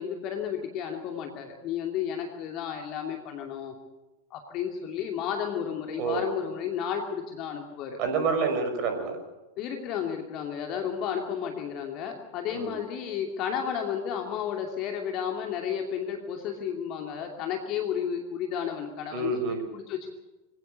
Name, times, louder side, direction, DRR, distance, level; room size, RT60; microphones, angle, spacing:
voice 1, 0.0-3.7 4.3-8.0 9.6-20.1, left 8 dB, 40° left, 3 dB, 2.7 m, -32 dB
voice 2, 8.0-9.2 12.5-12.7 19.1-19.6, right 4 dB, 40° right, 6 dB, 5.9 m, -28 dB
25.5 x 17.0 x 6.9 m, 1.1 s
figure-of-eight pair, 90°, 0 cm